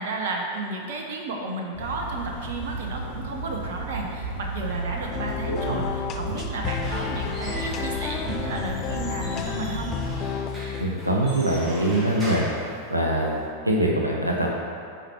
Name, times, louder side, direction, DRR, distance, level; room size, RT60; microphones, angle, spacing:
voice 1, 0.0-9.9, right 2 dB, 55° right, 1 dB, 0.9 m, -32 dB
sound 1, 1.7-10.2, right 2 dB, 70° left, 1.9 m, -34 dB
sound 2, 5.1-10.9, left 7 dB, 30° left, 0.5 m, -32 dB
Squeak / Wood, 6.6-13.5, equal, 15° right, 1.9 m, -39 dB
voice 2, 10.8-12.4 12.9-13.4 13.6-14.6, right 1 dB, 85° right, -1 dB, 0.9 m, -23 dB
9.0 x 4.6 x 4.4 m, 2.4 s
figure-of-eight pair, 90°, 0 cm